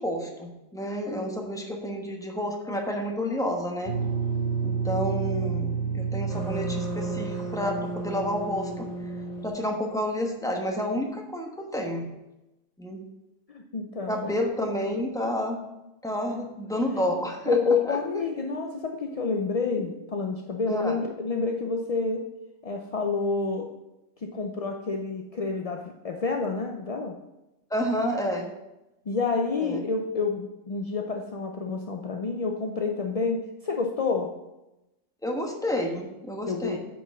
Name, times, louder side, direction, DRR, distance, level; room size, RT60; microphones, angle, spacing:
voice 1, 0.0-3.9 4.6-8.9 9.4-12.1 12.8-13.0 14.1-15.6 16.0-17.6 17.9-18.0 20.7-21.0 27.7-28.5 29.6-29.8 35.2-36.8, equal, 5° left, 1 dB, 1.0 m, -30 dB
sound 1, 3.9-9.5, right 4 dB, 30° left, 1.5 m, -30 dB
voice 2, 13.5-14.3 17.5-22.3 22.6-23.7 24.2-27.2 29.1-34.3 36.5-36.8, left 4 dB, 50° left, 2 dB, 0.4 m, -28 dB
8.9 x 4.7 x 6.1 m, 0.96 s
omnidirectional pair, 1.4 m